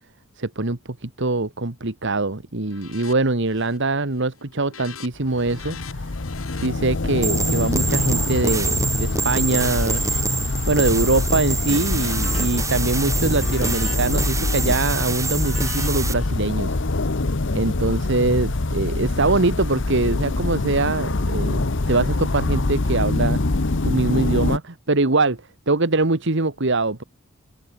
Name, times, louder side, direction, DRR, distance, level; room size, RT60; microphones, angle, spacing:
voice 1, 0.4-6.1 6.5-10.0 10.7-16.8 17.5-21.6 21.9-23.4 23.8-27.0, right 2 dB, 60° right, 1.7 m, -23 dB
sound 1, 2.7-3.2 3.4-3.9 4.2-9.0 9.5-10.8 11.2-16.3, left 5 dB, 80° left, 5.4 m, -43 dB
sound 2, 5.2-24.6, left 2 dB, 60° left, 1.1 m, -24 dB
sound 3, 7.2-16.1, right 4 dB, 15° right, 1.8 m, -26 dB
head